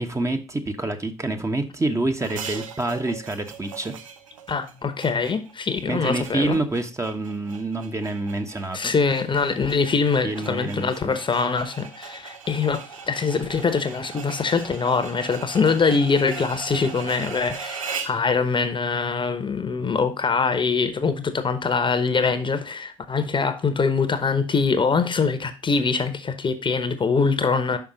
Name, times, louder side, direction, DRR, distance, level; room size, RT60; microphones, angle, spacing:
voice 1, 0.0-4.0 5.9-8.9 10.2-11.2, right 2 dB, 20° right, 1.0 m, -27 dB
sound 1, 2.2-18.3, right 6 dB, 90° right, 0.6 m, -39 dB
voice 2, 4.5-6.6 8.7-27.8, left 5 dB, 30° left, 1.0 m, -23 dB
5.8 x 5.2 x 5.0 m
hypercardioid pair, 55°, 16 cm